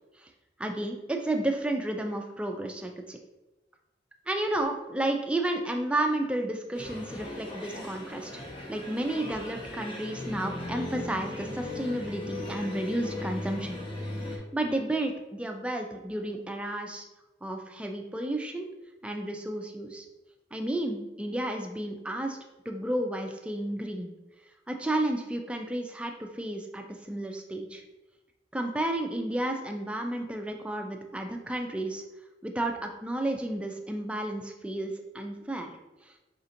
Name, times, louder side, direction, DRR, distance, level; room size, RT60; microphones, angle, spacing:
voice 1, 0.6-3.2 4.3-13.8 14.3-17.1 17.4-18.7 19.0-20.1 20.5-22.4 22.7-24.1 24.7-27.8 28.5-32.0 32.4-35.8, right 1 dB, 5° right, 3 dB, 0.3 m, -32 dB
sound 1, 6.7-14.4, left 1 dB, 30° left, 0.7 m, -38 dB
5.0 x 2.7 x 2.5 m, 1.0 s
head